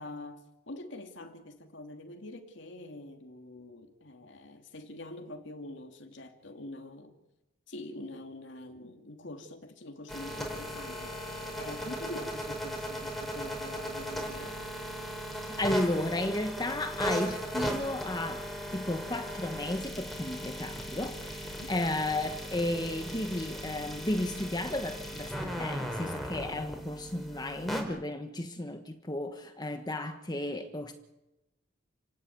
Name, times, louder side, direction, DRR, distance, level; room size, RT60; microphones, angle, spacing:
voice 1, 0.0-7.2 7.7-14.6 21.4-21.7, left 1 dB, 60° left, 2.6 m, -45 dB
sound 1, 10.1-27.8, equal, ahead, 4.8 m, -37 dB
voice 2, 15.6-18.5 18.7-30.9, left 1 dB, 20° left, 1.3 m, -33 dB
29.5 x 17.0 x 9.5 m
head